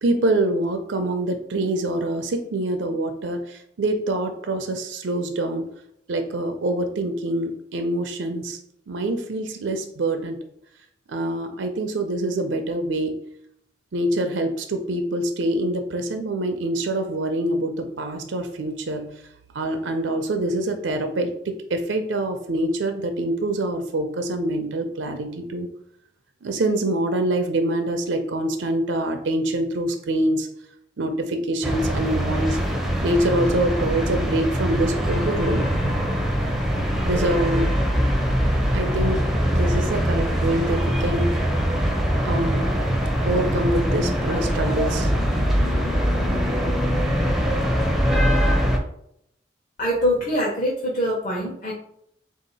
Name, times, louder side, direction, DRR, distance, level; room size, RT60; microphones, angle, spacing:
voice 1, 0.0-5.7 6.1-8.6 8.9-10.4 11.1-13.1 13.9-19.0 19.5-25.7 26.4-30.5 31.0-32.6 33.0-35.7 37.1-37.7 38.7-39.2 39.5-41.4 42.2-42.7 43.2-45.1, right 1 dB, 90° right, 7 dB, 0.5 m, -25 dB
sound 1, 31.6-48.8, equal, ahead, 0.5 m, -22 dB
voice 2, 49.8-51.7, equal, 40° left, -5 dB, 0.9 m, -23 dB
3.6 x 2.8 x 4.0 m, 0.73 s
head